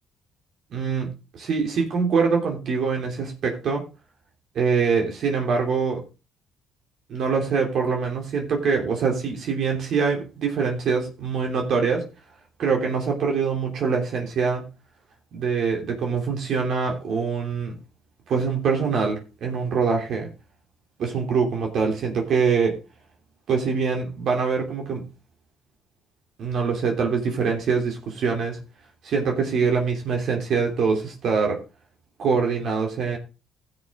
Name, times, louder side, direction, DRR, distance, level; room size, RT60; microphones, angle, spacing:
voice 1, 0.7-3.8 4.5-6.0 7.1-12.0 12.6-14.7 15.3-17.7 18.3-20.3 21.0-22.8 23.5-25.1 26.4-28.6 29.0-31.6 32.2-33.2, right 5 dB, 65° right, 3.0 m, -24 dB
15.5 x 6.7 x 3.7 m
supercardioid pair, 70°, 0 cm